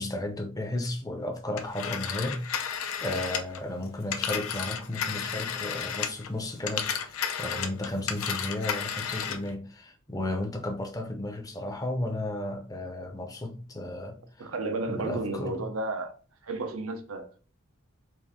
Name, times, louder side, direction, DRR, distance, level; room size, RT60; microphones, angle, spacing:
voice 1, 0.0-14.5 15.0-15.6, left 1 dB, 15° left, 0.6 m, -34 dB
Telephone, 1.6-6.3 6.6-9.5, left 7 dB, 85° left, 0.6 m, -33 dB
voice 2, 14.4-16.2 16.4-17.4, right 2 dB, 85° right, 0.8 m, -32 dB
4.5 x 2.6 x 3.6 m
head